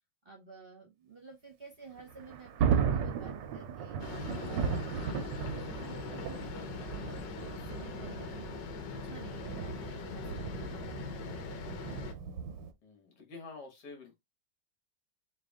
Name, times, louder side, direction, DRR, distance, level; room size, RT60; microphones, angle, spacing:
voice 1, 0.2-4.0 4.4-12.3, right 4 dB, 40° right, 0.9 m, -52 dB
Thunder, 2.0-12.7, right 7 dB, 90° right, 1.3 m, -36 dB
sound 1, 4.0-12.1, left 6 dB, 80° left, 1.4 m, -42 dB
voice 2, 10.2-10.6 12.8-14.1, left 3 dB, 65° left, 2.0 m, -49 dB
4.1 x 2.6 x 3.6 m
omnidirectional pair, 1.9 m